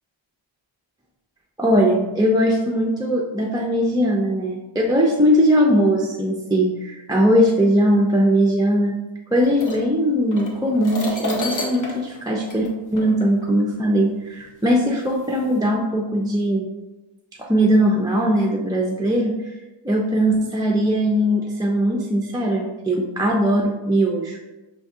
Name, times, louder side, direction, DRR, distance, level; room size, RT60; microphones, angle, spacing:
voice 1, 1.6-8.9 9.3-16.6 17.4-19.5 19.8-24.4, equal, 10° right, -2 dB, 0.4 m, -20 dB
sound 1, 9.4-13.5 14.4-14.5 15.2-15.6, left 1 dB, 40° left, 0.9 m, -31 dB
5.7 x 3.5 x 2.6 m, 1.1 s
wide cardioid pair, 100°, 50 cm